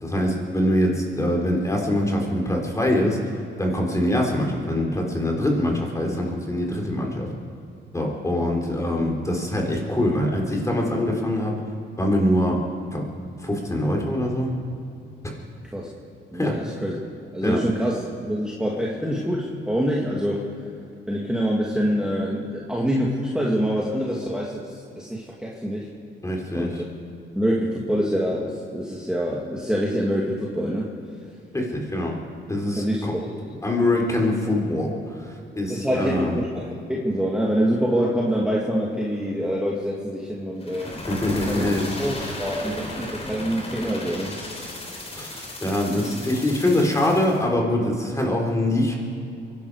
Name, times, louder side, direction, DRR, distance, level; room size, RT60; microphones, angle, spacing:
voice 1, 0.0-7.3 7.9-11.5 12.0-12.6 12.9-13.0 13.4-14.6 16.3-16.6 17.4-17.6 26.2-26.8 31.5-32.2 32.5-33.1 33.6-36.4 41.1-41.9 42.2-42.3 45.1-48.9, left 1 dB, 15° left, 0 dB, 3.9 m, -24 dB
voice 2, 16.3-17.0 17.3-20.7 21.1-25.9 26.5-26.8 27.3-30.9 32.8-33.6 35.7-41.0 41.5-41.6 42.0-44.4, equal, 5° right, -4 dB, 2.3 m, -25 dB
sound 1, 40.6-47.4, left 2 dB, 30° left, 3.9 m, -35 dB
23.5 x 11.5 x 4.9 m, 2.6 s
cardioid pair, 90°, 20 cm